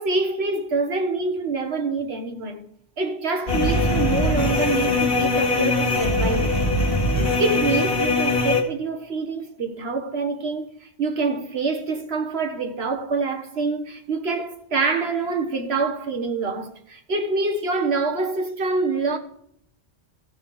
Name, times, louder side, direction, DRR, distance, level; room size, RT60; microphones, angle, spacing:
voice 1, 0.0-2.7 3.0-6.5 7.4-19.2, right 3 dB, 75° right, 1.6 m, -26 dB
sound 1, 3.5-8.6, left 2 dB, 50° left, 2.3 m, -21 dB
15.0 x 5.5 x 4.8 m
omnidirectional pair, 1.1 m